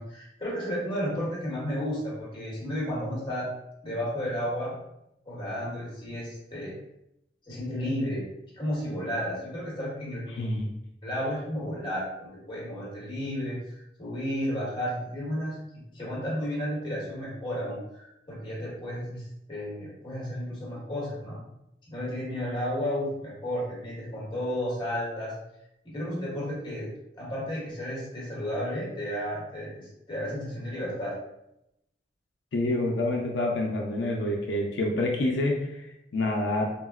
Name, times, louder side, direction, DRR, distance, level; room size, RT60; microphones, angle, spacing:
voice 1, 0.0-3.5 3.8-4.7 5.3-6.7 7.5-8.2 8.5-10.2 11.0-19.2 19.5-21.4 21.9-25.3 25.8-26.9 27.1-31.1, equal, 25° left, -5 dB, 1.0 m, -32 dB
voice 2, 10.3-10.7 32.5-35.9 36.1-36.6, left 1 dB, 90° left, 0 dB, 0.4 m, -27 dB
3.6 x 2.0 x 2.3 m, 0.83 s
head